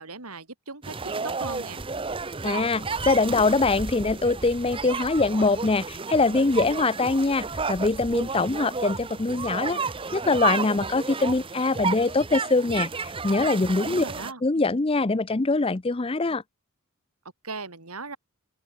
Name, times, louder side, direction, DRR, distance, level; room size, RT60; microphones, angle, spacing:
voice 1, 0.0-1.8 13.8-14.4 17.4-18.2, right 3 dB, 80° right, 4.1 m, -38 dB
sound 1, 0.8-14.3, right 4 dB, 25° right, 0.8 m, -32 dB
voice 2, 2.4-9.8 10.1-14.0 14.4-16.4, left 3 dB, 25° left, 0.5 m, -23 dB
open air
head